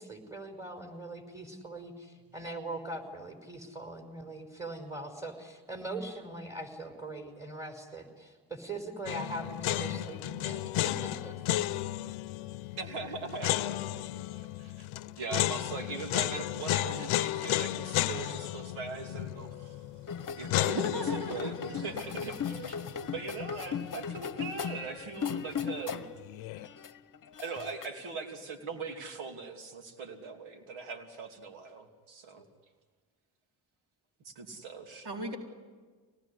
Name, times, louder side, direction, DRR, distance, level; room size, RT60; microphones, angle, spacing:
voice 1, 0.0-11.4, right 2 dB, 5° right, 4 dB, 5.2 m, -41 dB
sound 1, 9.1-24.1 24.3-24.4 26.2-26.7, left 14 dB, 80° left, 0.8 m, -34 dB
voice 2, 12.8-14.9 15.2-19.9 20.3-22.8 23.1-26.1 27.4-32.5 34.2-35.1, right 4 dB, 80° right, 5 dB, 2.9 m, -41 dB
sound 2, 20.1-26.2 26.6-27.9, left 7 dB, 40° left, 1.1 m, -37 dB
voice 3, 20.7-21.7 35.0-35.4, right 1 dB, 50° right, 1 dB, 4.1 m, -36 dB
25.0 x 19.0 x 9.9 m, 1.5 s
supercardioid pair, 50°, 48 cm